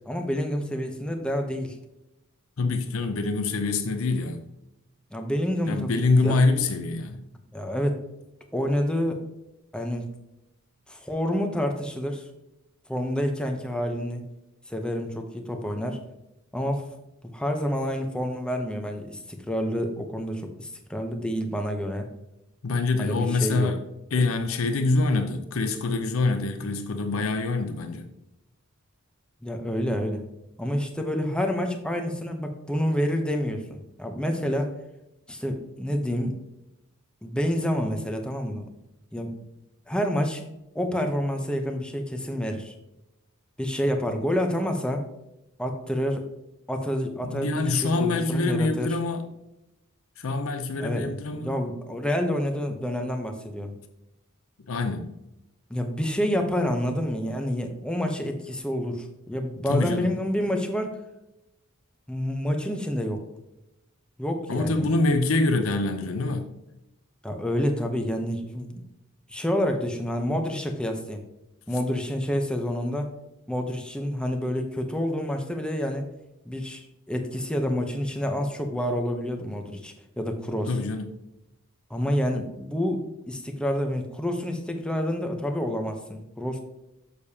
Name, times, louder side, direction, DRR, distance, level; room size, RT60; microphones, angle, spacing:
voice 1, 0.1-1.8 5.1-6.4 7.5-8.0 8.5-9.2 9.7-10.1 10.9-12.3 12.9-14.3 14.7-16.0 16.5-16.9 17.2-22.1 23.0-23.8 29.4-30.2 30.6-34.7 35.3-36.3 37.2-38.7 39.1-39.3 39.9-40.4 40.7-42.7 43.6-45.0 45.6-46.3 46.7-49.0 50.8-53.7 55.7-61.0 62.1-63.2 64.2-64.9 67.2-68.8 69.3-71.2 71.7-73.1 73.5-76.1 76.4-80.8 81.9-86.6, equal, 5° left, 0.8 m, -28 dB
voice 2, 2.6-4.4 5.7-7.2 22.6-23.8 24.1-28.1 47.2-49.2 50.2-51.5 54.7-55.1 59.7-60.1 64.5-66.5 80.7-81.2, left 3 dB, 70° left, 0.6 m, -25 dB
6.8 x 6.7 x 2.8 m
head